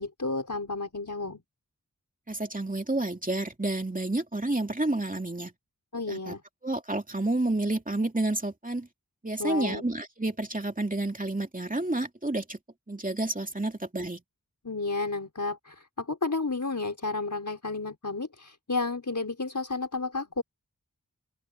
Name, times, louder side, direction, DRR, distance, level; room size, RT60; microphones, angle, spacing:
voice 1, 0.0-1.4 5.9-6.4 9.4-9.8 14.6-20.4, left 3 dB, 60° left, 4.7 m, -32 dB
voice 2, 2.3-5.5 6.1-6.3 6.6-8.9 9.2-12.6 12.9-14.2, right 2 dB, 25° right, 2.8 m, -30 dB
wide cardioid pair, 50°, 33 cm